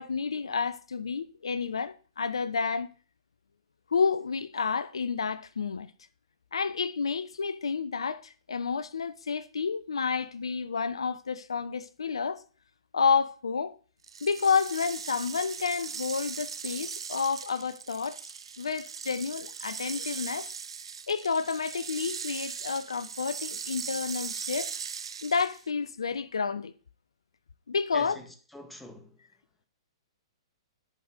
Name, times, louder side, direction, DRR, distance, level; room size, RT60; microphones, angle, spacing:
voice 1, 0.0-2.9 3.9-5.9 6.5-12.4 12.9-13.8 14.2-20.5 21.1-24.7 25.2-26.7 27.7-28.2, left 5 dB, 80° left, 0.6 m, -30 dB
sound 1, 14.0-25.7, right 6 dB, 75° right, 0.7 m, -39 dB
voice 2, 27.9-29.2, left 1 dB, 5° left, 1.7 m, -45 dB
11.0 x 5.2 x 6.4 m
hypercardioid pair, 120°, 3 cm